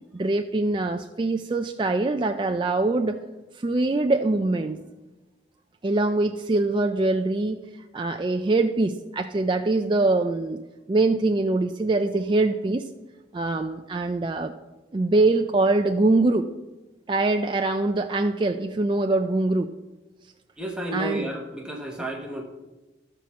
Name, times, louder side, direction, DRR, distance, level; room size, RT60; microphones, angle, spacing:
voice 1, 0.1-3.2 3.5-4.8 5.8-7.6 7.9-10.6 10.9-12.9 13.3-14.5 14.9-16.5 17.1-19.7 20.9-21.3, right 2 dB, 25° right, 5 dB, 0.4 m, -23 dB
voice 2, 20.6-22.4, right 1 dB, 5° right, 0 dB, 1.1 m, -32 dB
13.0 x 4.5 x 7.1 m, 1.1 s
head